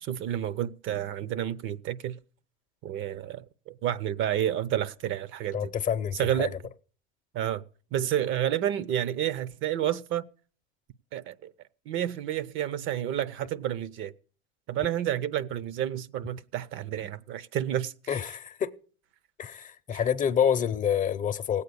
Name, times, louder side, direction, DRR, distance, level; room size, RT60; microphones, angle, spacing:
voice 1, 0.0-2.1 2.8-5.7 6.2-6.5 7.3-7.6 7.9-10.2 11.1-11.5 11.9-14.1 14.7-18.2, right 11 dB, 45° right, 0.8 m, -30 dB
voice 2, 5.5-6.5 18.1-18.7 19.4-21.6, left 8 dB, 25° left, 0.7 m, -27 dB
18.0 x 8.4 x 6.9 m
supercardioid pair, 115°, 29 cm